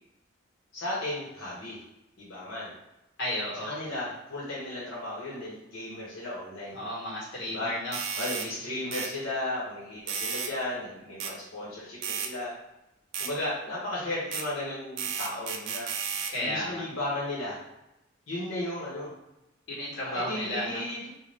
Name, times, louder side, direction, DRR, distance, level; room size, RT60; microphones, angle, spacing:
voice 1, 0.7-1.8 2.2-2.7 3.7-6.8 7.5-7.7 8.1-12.5 13.2-15.9 16.4-17.6 18.3-19.1 20.0-21.1, left 1 dB, 90° left, -7 dB, 1.0 m, -35 dB
voice 2, 3.2-3.7 6.7-8.0 16.3-16.8 19.7-20.8, left 1 dB, 65° left, -6 dB, 1.2 m, -33 dB
sound 1, 7.9-8.5 8.9-9.1 10.1-10.5 11.2-11.3 12.0-12.3 13.1-13.3 14.3-14.5 15.0-16.4, right 6 dB, 70° right, 0.3 m, -33 dB
2.6 x 2.2 x 3.3 m, 0.92 s
head